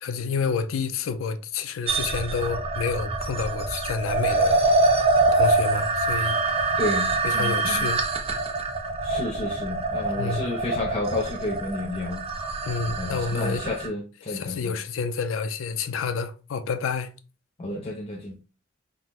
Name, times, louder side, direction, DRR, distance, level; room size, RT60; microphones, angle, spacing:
voice 1, 0.0-4.6 5.3-6.4 7.2-8.0 10.1-10.4 12.6-13.6 14.3-17.1, left 5 dB, 85° left, 0.4 m, -29 dB
sound 1, 1.9-13.9, right 2 dB, 30° right, 0.4 m, -25 dB
voice 2, 6.8-7.9 9.0-12.2 13.0-14.8 17.6-18.4, left 2 dB, 30° left, 0.5 m, -31 dB
3.6 x 2.0 x 2.8 m
head